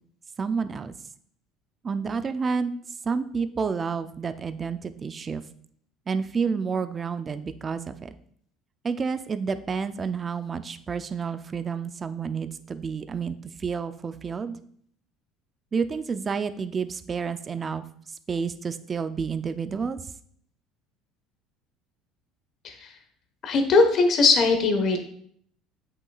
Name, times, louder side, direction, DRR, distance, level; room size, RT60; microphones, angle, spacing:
voice 1, 0.4-0.9 1.8-2.7 3.1-5.4 6.1-8.1 8.8-13.4 13.6-14.6 15.7-17.8 18.3-20.0, right 5 dB, 25° right, 11 dB, 0.4 m, -29 dB
voice 2, 23.4-25.0, left 3 dB, 40° left, 6 dB, 1.1 m, -20 dB
8.1 x 5.9 x 2.4 m, 0.63 s
cardioid pair, 140°, 0 cm